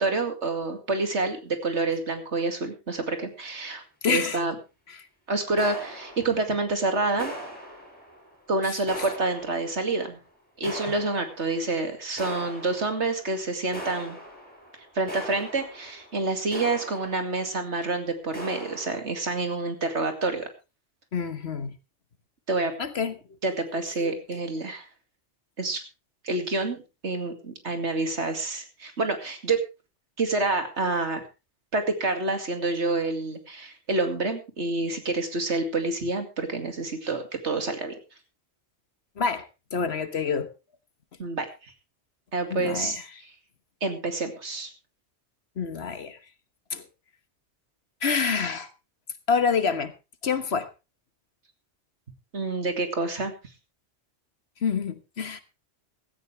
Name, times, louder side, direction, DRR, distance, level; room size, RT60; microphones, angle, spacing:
voice 1, 0.0-4.5 5.3-7.3 8.5-10.2 10.6-14.2 14.9-20.5 22.5-22.7 23.4-24.9 25.6-25.8 26.2-29.6 30.2-31.2 31.7-37.9 41.2-41.5 42.3-43.0 43.8-44.7 52.3-53.3, right 3 dB, 70° right, 2.6 m, -28 dB
voice 2, 4.0-4.4 4.9-5.1 9.0-9.1 21.1-21.8 22.8-23.2 24.0-24.4 39.2-40.5 42.5-43.0 45.6-46.2 46.7-46.9 48.0-48.7 49.3-49.9 50.2-50.7 54.6-55.4, left 5 dB, 65° left, 1.5 m, -27 dB
sound 1, 5.6-6.8 7.2-8.5 8.9-10.0 10.6-11.8 12.2-13.3 13.7-17.7 18.3-19.0, equal, 10° left, 6.0 m, -40 dB
16.5 x 13.5 x 3.3 m
omnidirectional pair, 1.2 m